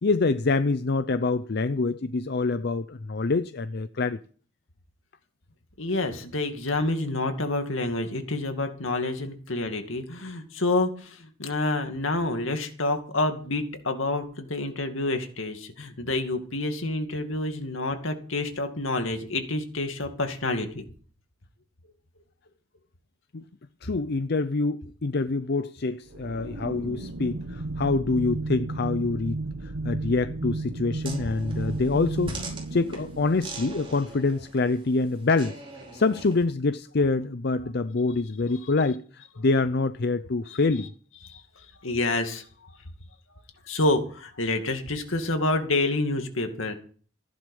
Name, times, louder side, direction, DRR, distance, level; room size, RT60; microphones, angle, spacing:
voice 1, 0.0-4.2 23.3-23.4 23.8-29.4 29.6-35.6 35.9-40.9, left 3 dB, 50° left, 0.6 m, -26 dB
voice 2, 5.8-20.8 40.5-40.6 41.3-41.4 41.8-42.5 43.7-46.7, left 2 dB, 75° left, 2.3 m, -28 dB
sound 1, 26.1-34.3, right 2 dB, 80° right, 1.2 m, -34 dB
sound 2, 31.0-36.4, right 2 dB, 25° right, 5.1 m, -42 dB
15.0 x 11.0 x 5.5 m
head